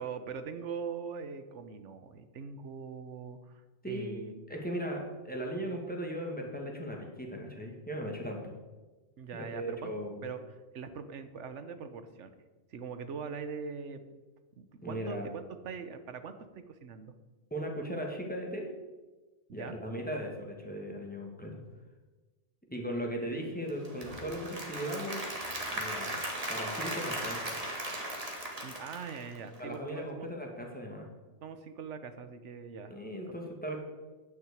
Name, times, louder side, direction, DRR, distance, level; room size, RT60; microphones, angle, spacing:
voice 1, 0.0-3.6 3.9-4.3 9.2-9.9 10.2-12.3 12.7-14.0 14.6-17.1 19.5-19.8 28.6-30.3 31.4-32.9, right 6 dB, 80° right, 10 dB, 1.2 m, -42 dB
voice 2, 3.8-8.6 9.3-10.3 14.8-15.3 17.5-18.7 19.5-21.6 22.7-25.2 25.7-26.2 26.5-27.5 29.6-31.1 32.9-33.8, equal, 5° left, -1 dB, 1.9 m, -38 dB
Applause / Crowd, 23.7-29.7, right 1 dB, 30° right, 1.8 m, -37 dB
9.6 x 6.1 x 8.3 m, 1.2 s
omnidirectional pair, 1.2 m